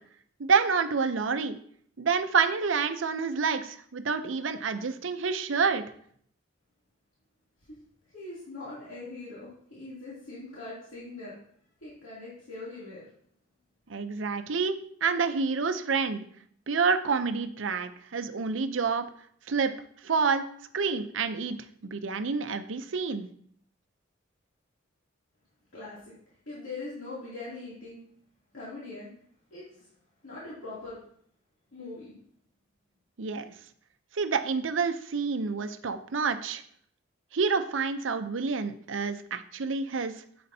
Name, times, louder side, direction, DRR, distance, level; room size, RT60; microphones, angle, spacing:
voice 1, 0.4-1.6 2.0-5.8 13.9-16.3 16.7-19.0 19.5-19.7 20.0-20.4 20.7-21.6 21.8-23.3 33.2-33.5 34.1-36.6 37.3-40.1, right 5 dB, 70° right, 10 dB, 0.6 m, -28 dB
voice 2, 8.1-11.3 11.8-13.1 25.7-26.1 26.5-28.0 28.5-29.1 29.5-29.9 30.2-31.0 31.7-32.1, left 2 dB, 75° left, -8 dB, 2.7 m, -41 dB
9.5 x 7.6 x 2.7 m, 0.63 s
head